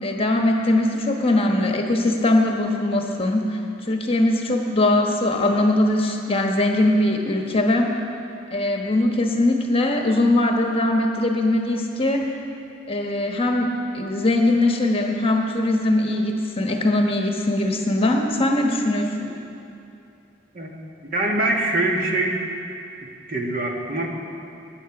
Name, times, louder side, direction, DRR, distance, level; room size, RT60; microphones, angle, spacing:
voice 1, 0.0-3.6 3.9-7.9 8.5-12.3 12.9-19.3, left 1 dB, 30° left, 2 dB, 1.2 m, -21 dB
voice 2, 20.5-22.4 23.0-24.1, right 2 dB, 50° right, 0 dB, 1.8 m, -24 dB
19.0 x 9.2 x 6.0 m, 2.7 s
head